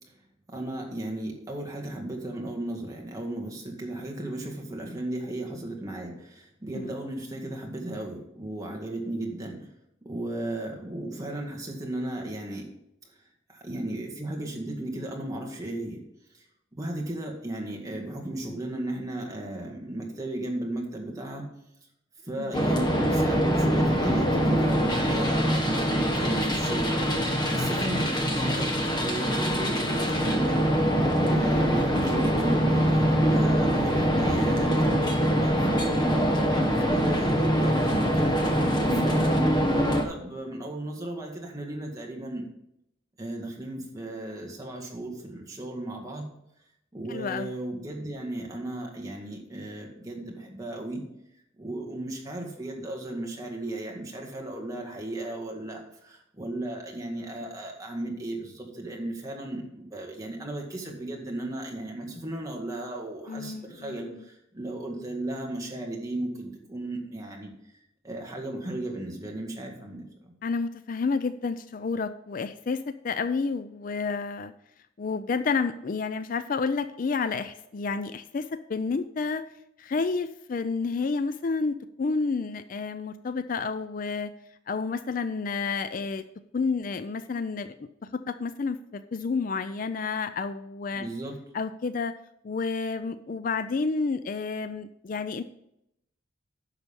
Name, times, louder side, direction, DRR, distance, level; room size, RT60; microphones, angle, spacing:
voice 1, 0.5-9.7 10.0-12.7 13.5-16.0 16.3-16.4 16.7-21.4 22.2-28.7 29.0-30.6 31.2-38.6 38.9-42.4 43.2-46.3 46.9-51.0 51.6-67.5 68.0-70.3 90.9-91.4, right 1 dB, 15° right, 0 dB, 2.0 m, -35 dB
sound 1, 22.5-40.1, equal, 20° left, 1.1 m, -24 dB
voice 2, 38.9-39.2 47.1-47.5 63.3-64.3 70.4-74.5 75.0-79.4 79.8-84.3 84.7-86.2 86.5-91.1 91.5-92.1 92.4-95.4, left 4 dB, 45° left, 12 dB, 0.4 m, -30 dB
10.5 x 6.6 x 5.3 m, 0.79 s
head